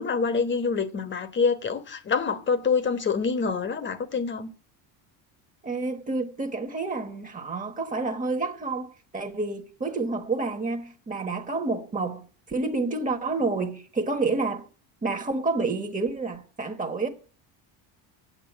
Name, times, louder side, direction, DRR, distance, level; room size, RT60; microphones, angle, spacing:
voice 1, 0.0-4.5, left 5 dB, 25° left, 1.2 m, -26 dB
voice 2, 5.6-14.7 15.0-17.1, right 3 dB, 20° right, 1.3 m, -29 dB
8.4 x 8.1 x 7.3 m
cardioid pair, 130°, 43 cm